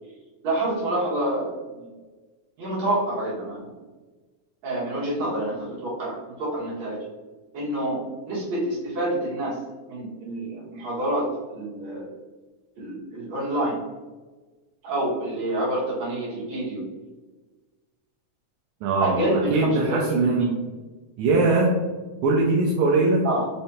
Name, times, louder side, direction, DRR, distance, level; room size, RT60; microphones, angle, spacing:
voice 1, 0.4-1.9 2.6-3.7 4.6-7.0 7.5-9.6 9.9-12.1 12.8-13.8 14.8-16.8 19.0-20.5 23.2-23.5, right 1 dB, 60° right, -8 dB, 2.8 m, -27 dB
voice 2, 18.8-20.6 21.2-21.8 22.2-23.3, right 3 dB, 80° right, -2 dB, 1.9 m, -21 dB
5.7 x 3.2 x 2.8 m, 1.3 s
omnidirectional pair, 3.7 m